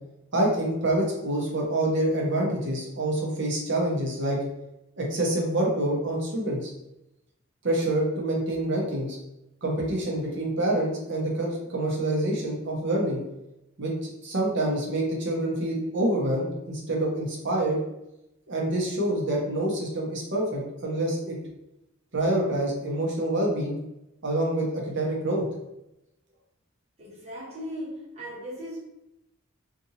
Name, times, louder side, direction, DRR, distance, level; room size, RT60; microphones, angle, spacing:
voice 1, 0.3-4.4 5.0-6.7 7.6-9.2 9.6-13.2 13.8-17.8 18.5-21.4 22.1-23.8 24.2-25.4, right 1 dB, 55° right, -2 dB, 0.8 m, -26 dB
voice 2, 27.0-28.8, equal, 30° right, -7 dB, 1.0 m, -37 dB
2.7 x 2.5 x 2.8 m, 0.88 s
head